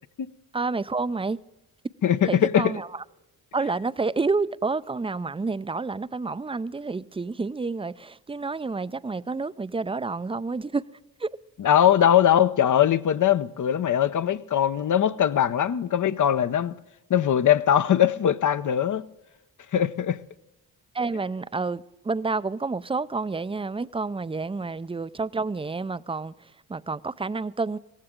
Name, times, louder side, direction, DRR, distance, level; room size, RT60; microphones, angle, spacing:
voice 1, 0.5-1.4 2.3-3.0 3.5-10.9 11.2-11.3 20.9-27.8, right 4 dB, 15° right, 0.5 m, -29 dB
voice 2, 2.0-2.6 11.6-16.8 17.1-19.0 19.7-20.2, left 10 dB, 50° left, 0.7 m, -21 dB
16.5 x 15.0 x 3.7 m
supercardioid pair, 55°, 39 cm